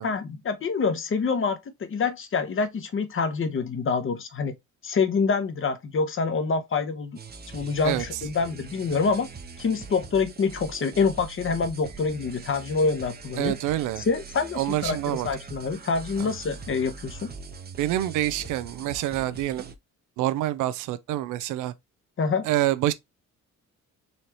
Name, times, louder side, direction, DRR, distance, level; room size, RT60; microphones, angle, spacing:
voice 1, 0.0-4.5 4.8-7.2 7.5-9.3 9.6-13.5 14.0-17.3 22.2-22.5, left 5 dB, 45° left, 1.0 m, -26 dB
sound 1, 7.2-19.8, right 4 dB, 30° right, 0.7 m, -42 dB
voice 2, 13.4-14.0 14.6-15.3 16.2-16.3 17.8-19.6 20.2-21.7 22.4-22.9, right 14 dB, 85° right, 0.5 m, -26 dB
4.1 x 3.2 x 2.9 m
cardioid pair, 90°, 30 cm